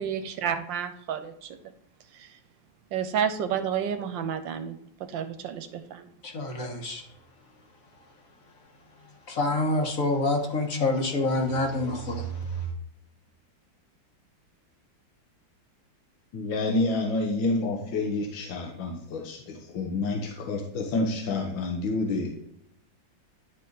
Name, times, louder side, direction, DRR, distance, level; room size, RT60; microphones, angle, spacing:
voice 1, 0.0-1.6 2.1-2.4 2.9-6.1, right 8 dB, 80° right, 9 dB, 1.3 m, -31 dB
voice 2, 6.2-7.0 9.3-12.7, left 2 dB, 45° left, 2 dB, 1.6 m, -27 dB
voice 3, 16.3-22.3, left 3 dB, 75° left, 2 dB, 1.8 m, -28 dB
10.5 x 4.3 x 4.0 m, 0.76 s
omnidirectional pair, 2.1 m